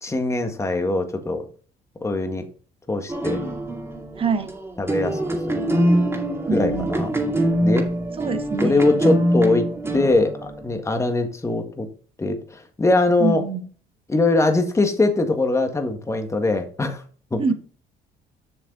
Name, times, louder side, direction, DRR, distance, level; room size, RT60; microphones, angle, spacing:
voice 1, 0.0-1.4 2.0-2.5 2.9-3.4 4.8-5.2 5.5-5.6 6.5-7.1 7.6-7.9 8.6-9.7 9.9-11.9 12.2-13.4 14.1-17.0 17.3-17.4, left 2 dB, 15° left, 1.6 m, -22 dB
sound 1, 3.1-10.8, right 1 dB, 15° right, 2.2 m, -24 dB
voice 2, 4.2-4.5 6.5-6.9 8.2-8.9 13.2-13.7 17.4-17.5, right 4 dB, 35° right, 1.2 m, -24 dB
7.2 x 6.5 x 3.8 m
cardioid pair, 110°, 17 cm